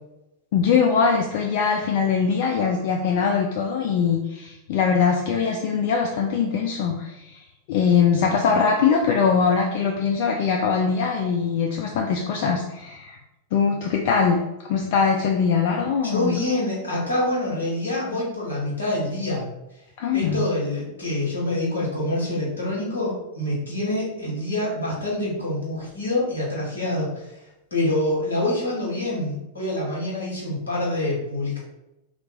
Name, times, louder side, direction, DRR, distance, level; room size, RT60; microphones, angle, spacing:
voice 1, 0.5-7.4 7.7-13.2 13.5-16.4 20.0-20.4, left 6 dB, 50° left, 2 dB, 0.3 m, -22 dB
voice 2, 16.1-19.4 20.1-27.4 27.7-31.6, left 1 dB, 75° left, -5 dB, 1.2 m, -26 dB
2.9 x 2.4 x 3.5 m, 0.93 s
figure-of-eight pair, 90°, 0 cm